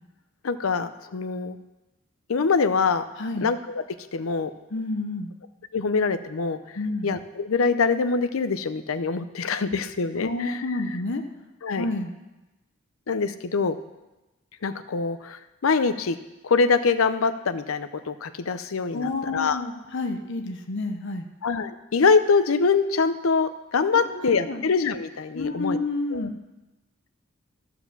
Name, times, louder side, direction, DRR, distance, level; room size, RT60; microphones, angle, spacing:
voice 1, 0.4-1.6 2.3-3.1 3.4-3.8 4.1-4.5 5.7-6.6 7.0-10.6 11.6-11.9 13.1-13.7 14.6-16.2 16.4-19.6 21.4-25.8 26.1-26.3, left 4 dB, 90° left, 11 dB, 0.6 m, -24 dB
voice 2, 3.2-3.5 4.7-5.3 6.8-7.1 10.2-11.2 11.7-12.1 18.9-21.3 23.9-24.6 25.3-26.3, left 2 dB, 60° left, 5 dB, 0.8 m, -29 dB
13.5 x 4.9 x 6.7 m, 1.1 s
head